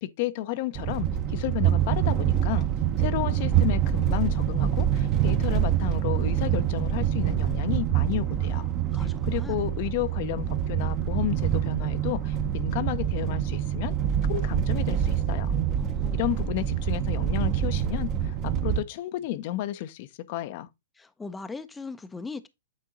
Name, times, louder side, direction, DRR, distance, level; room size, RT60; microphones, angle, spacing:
voice 1, 0.0-2.7 3.0-8.7 9.0-13.9 14.3-15.6 16.1-20.7, left 14 dB, 50° left, 0.6 m, -32 dB
sound 1, 0.8-18.8, right 10 dB, 35° right, 0.8 m, -26 dB
voice 2, 8.9-9.6 15.8-16.3 21.0-22.5, left 4 dB, 10° left, 0.5 m, -40 dB
8.6 x 3.7 x 3.8 m
hypercardioid pair, 125°, 0 cm